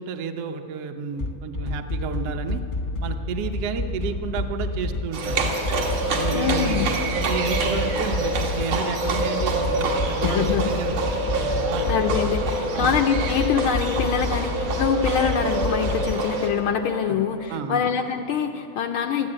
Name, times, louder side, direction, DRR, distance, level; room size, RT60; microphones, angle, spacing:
voice 1, 0.0-2.6 3.0-5.5 6.1-6.9 7.2-10.9 11.6-11.9 12.7-12.9 17.1-17.2 17.5-17.8, right 6 dB, 65° right, 5 dB, 1.7 m, -31 dB
sound 1, 1.2-16.1, left 2 dB, 45° left, 0.6 m, -29 dB
Livestock farm animals working animals, 5.1-16.5, right 2 dB, 80° right, 3.8 m, -26 dB
voice 2, 6.3-6.9 10.2-10.7 11.9-19.3, left 7 dB, 90° left, 5 dB, 1.1 m, -24 dB
23.0 x 14.0 x 8.8 m, 2.9 s
omnidirectional pair, 3.3 m